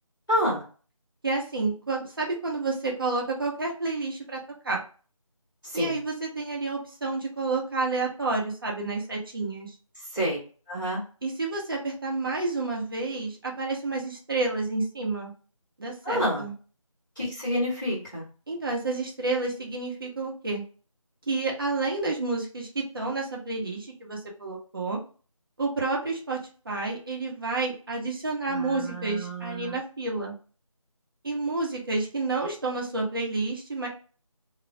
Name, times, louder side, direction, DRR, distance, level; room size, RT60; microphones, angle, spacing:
voice 1, 0.3-0.6 5.7-6.0 10.1-10.4 10.7-11.0 16.0-16.4 17.2-18.2 28.5-29.7, equal, 5° left, -23 dB, 0.6 m, -28 dB
voice 2, 1.2-4.4 4.6-4.8 5.7-9.8 11.2-15.3 15.8-16.5 18.5-20.6 21.3-25.0 25.6-30.3 31.2-33.9, right 3 dB, 40° right, -2 dB, 0.7 m, -30 dB
2.3 x 2.0 x 2.7 m, 0.38 s
figure-of-eight pair, 170°, 18 cm